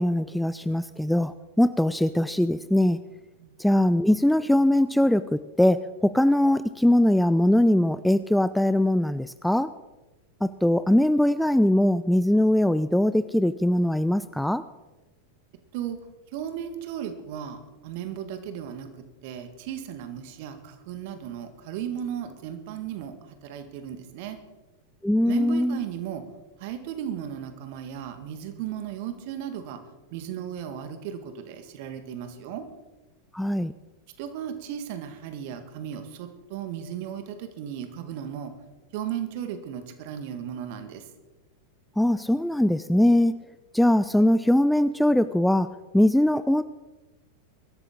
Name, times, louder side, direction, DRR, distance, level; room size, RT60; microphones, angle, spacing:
voice 1, 0.0-3.0 3.6-9.7 10.4-14.6 25.0-25.8 33.3-33.7 42.0-43.4 43.7-46.6, left 1 dB, ahead, 14 dB, 0.4 m, -21 dB
voice 2, 16.3-17.6 17.8-18.9 19.2-23.1 23.4-24.4 25.2-26.2 26.6-29.8 30.1-32.6 34.2-38.5 38.9-41.0, right 9 dB, 50° right, 8 dB, 1.8 m, -35 dB
23.0 x 12.5 x 3.8 m, 1.1 s
figure-of-eight pair, 90°, 0 cm